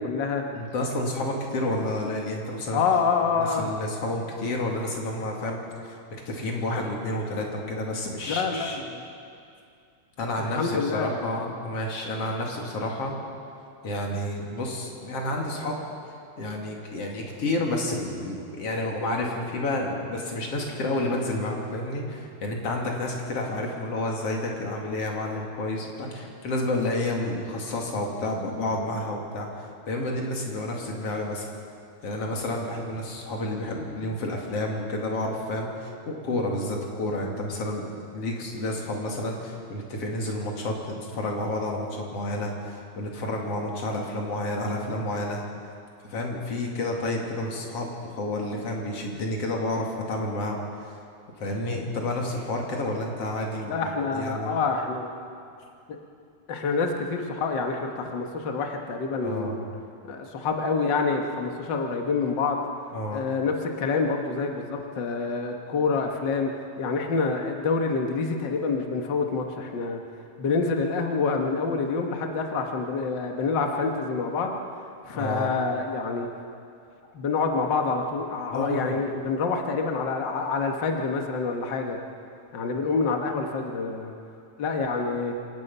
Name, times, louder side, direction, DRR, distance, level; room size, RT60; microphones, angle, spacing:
voice 1, 0.0-0.4 2.7-3.7 8.3-9.0 10.4-11.3 53.7-55.2 56.5-59.6 60.0-62.7 63.1-66.5 66.8-70.0 70.4-74.6 75.0-76.3 77.1-82.0 82.5-84.1 84.6-85.3, left 4 dB, 80° left, 3 dB, 1.0 m, -27 dB
voice 2, 0.5-2.8 3.4-6.0 6.3-8.8 10.2-13.1 13.8-15.8 16.4-31.5 32.0-37.8 38.1-45.4 46.0-51.0 51.4-54.6 59.2-59.6 62.9-63.3 75.1-75.5 78.5-79.1, left 1 dB, 45° left, 0 dB, 3.1 m, -30 dB
27.0 x 18.0 x 5.6 m, 2.5 s
omnidirectional pair, 4.4 m